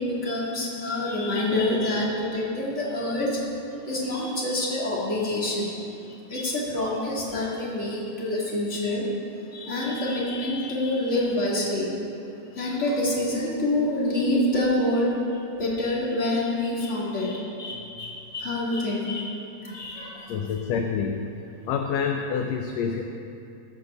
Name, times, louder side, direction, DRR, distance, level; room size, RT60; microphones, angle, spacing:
voice 1, 0.0-3.4 3.8-9.1 9.5-11.9 12.5-19.3 19.6-20.4, left 1 dB, 25° left, -5 dB, 2.1 m, -27 dB
voice 2, 20.3-21.3 21.6-23.0, left 6 dB, 80° left, 4 dB, 1.6 m, -27 dB
14.5 x 5.5 x 6.7 m, 2.7 s
omnidirectional pair, 3.5 m